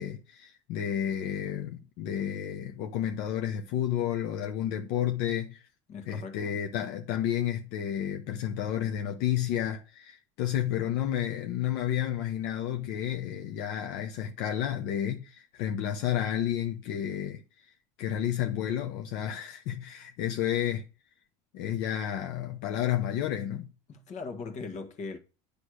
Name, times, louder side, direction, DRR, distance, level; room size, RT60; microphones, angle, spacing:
voice 1, 0.0-5.6 6.0-17.4 18.0-20.8 21.5-23.7, left 10 dB, 70° left, 1.1 m, -31 dB
voice 2, 5.9-6.6 23.9-25.2, left 4 dB, 45° left, 1.7 m, -39 dB
10.0 x 3.5 x 6.4 m
supercardioid pair, 125°, 16 cm